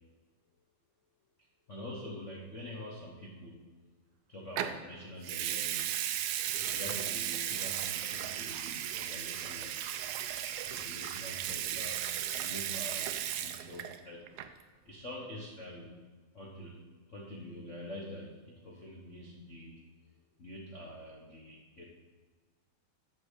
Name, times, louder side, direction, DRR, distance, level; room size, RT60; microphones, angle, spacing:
voice 1, 1.7-3.7 4.3-6.1 6.6-9.8 10.7-14.5 14.8-16.0 16.3-19.8 20.4-21.8, left 1 dB, 85° left, -3 dB, 0.6 m, -46 dB
Water tap faucet / Sink (filling or washing) / Liquid, 4.6-4.8 5.2-14.0 14.3-14.6, right 11 dB, 85° right, 1.4 m, -35 dB
8.1 x 7.5 x 6.6 m, 1.4 s
omnidirectional pair, 3.3 m